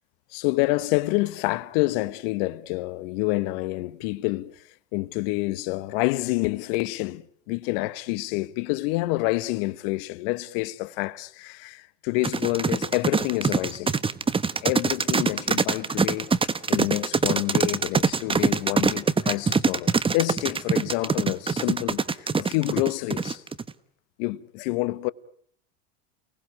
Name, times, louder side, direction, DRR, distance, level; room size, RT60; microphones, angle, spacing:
voice 1, 0.3-4.6 4.9-7.2 7.5-13.9 14.6-16.4 16.7-23.4 24.2-25.1, left 20 dB, 65° left, 1.2 m, -28 dB
sound 1, 12.2-23.7, right 5 dB, 15° right, 1.3 m, -23 dB
29.0 x 19.5 x 9.4 m
hypercardioid pair, 90°, 31 cm